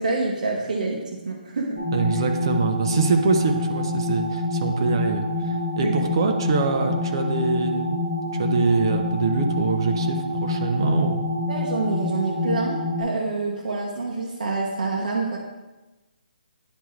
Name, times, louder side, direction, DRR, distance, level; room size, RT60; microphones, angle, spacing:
voice 1, 0.0-1.8 5.8-6.1 10.8-11.1 11.5-15.4, right 3 dB, 55° right, -1 dB, 0.9 m, -27 dB
sound 1, 1.8-13.0, left 2 dB, 5° right, 1.3 m, -27 dB
voice 2, 1.9-8.0 8.3-11.2, right 4 dB, 30° right, 5 dB, 0.5 m, -24 dB
9.9 x 3.5 x 3.1 m, 1.1 s
hypercardioid pair, 175°, 5 cm